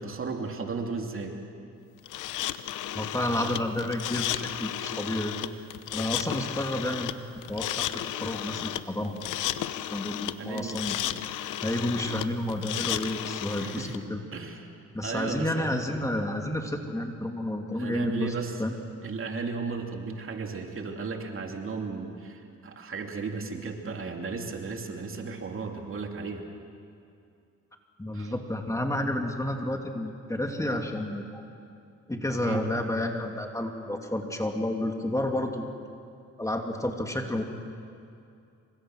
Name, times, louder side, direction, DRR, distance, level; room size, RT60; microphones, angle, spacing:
voice 1, 0.0-1.4 10.4-10.8 13.5-13.9 14.3-14.7 15.0-15.7 17.8-18.6 19.0-26.4 28.1-28.3 32.4-32.6, right 4 dB, 45° right, 3 dB, 2.9 m, -35 dB
sound 1, 2.1-14.0, left 12 dB, 80° left, 0.9 m, -33 dB
voice 2, 2.9-5.4 5.9-7.1 7.5-9.2 9.9-11.0 11.6-14.2 14.9-18.7 28.0-31.5 32.1-35.7 36.4-37.4, left 1 dB, 10° left, 3 dB, 2.5 m, -30 dB
27.5 x 25.5 x 6.4 m, 2.5 s
cardioid pair, 90°, 30 cm